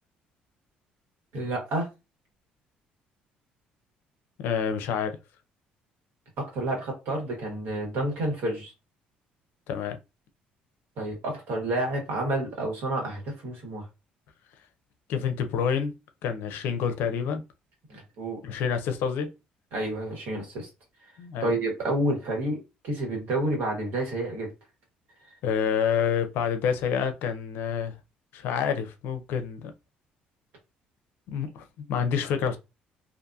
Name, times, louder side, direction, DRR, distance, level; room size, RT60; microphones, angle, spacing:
voice 1, 1.3-1.9 6.5-8.7 11.0-13.9 17.9-18.4 19.7-20.6 21.4-24.5, right 1 dB, 75° right, 1.4 m, -29 dB
voice 2, 4.4-5.2 9.7-10.0 15.1-15.9 16.2-17.4 18.4-19.3 21.2-21.5 25.4-28.0 28.3-29.7 31.3-32.6, left 7 dB, 75° left, 0.5 m, -28 dB
2.6 x 2.5 x 2.4 m
supercardioid pair, 80°, 4 cm